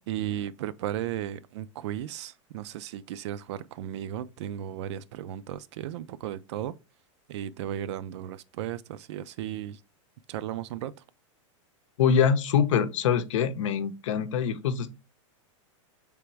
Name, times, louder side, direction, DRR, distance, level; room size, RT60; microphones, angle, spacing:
voice 1, 0.1-6.7 7.3-9.8 10.3-10.9, right 11 dB, 60° right, 0.4 m, -35 dB
voice 2, 12.0-14.9, left 7 dB, 70° left, 0.7 m, -24 dB
3.5 x 3.0 x 4.6 m
supercardioid pair, 145°, 17 cm